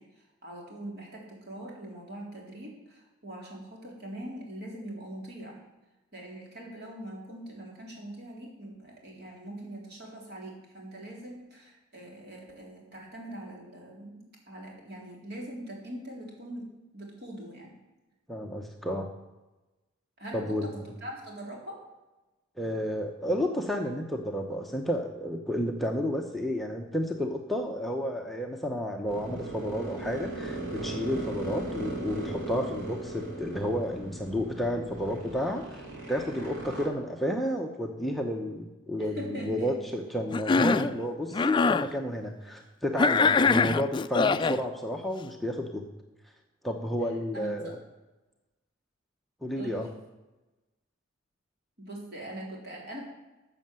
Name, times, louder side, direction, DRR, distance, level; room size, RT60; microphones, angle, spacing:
voice 1, 0.0-5.6 6.1-17.8 20.2-21.8 39.0-40.0 43.3-43.4 47.3-47.7 49.6-49.9 51.8-53.0, right 1 dB, 55° right, -2 dB, 3.7 m, -42 dB
voice 2, 18.3-19.1 20.3-20.7 22.6-45.9 46.6-47.8 49.4-49.9, equal, ahead, 1 dB, 0.8 m, -31 dB
sound 1, 29.1-36.9, right 2 dB, 75° right, 3.3 m, -38 dB
Cough, 40.3-40.9 41.3-41.9 43.0-44.6, left 4 dB, 25° left, 0.3 m, -23 dB
13.0 x 6.8 x 7.7 m, 1.1 s
head